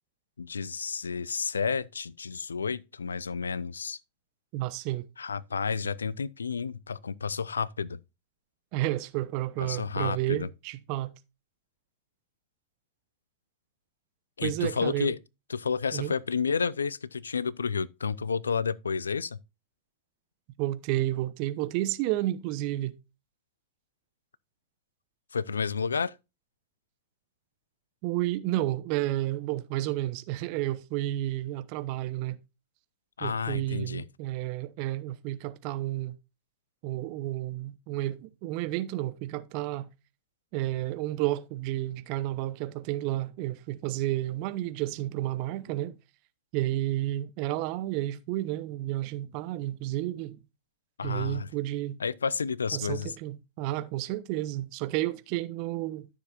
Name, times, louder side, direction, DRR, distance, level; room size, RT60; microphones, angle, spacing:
voice 1, 0.4-4.0 5.2-8.0 9.6-10.5 14.4-15.2 15.5-19.4 25.3-26.2 33.2-34.0 51.0-51.5 52.0-53.1, left 5 dB, 75° left, 0.4 m, -31 dB
voice 2, 4.5-5.0 8.7-11.1 14.4-15.1 15.9-16.1 20.6-22.9 28.0-32.4 33.2-36.2 36.8-39.9 40.5-46.0 46.5-50.4 51.0-52.0 52.7-56.1, right 15 dB, 45° right, 0.8 m, -31 dB
13.0 x 6.9 x 2.6 m
figure-of-eight pair, 90°, 0 cm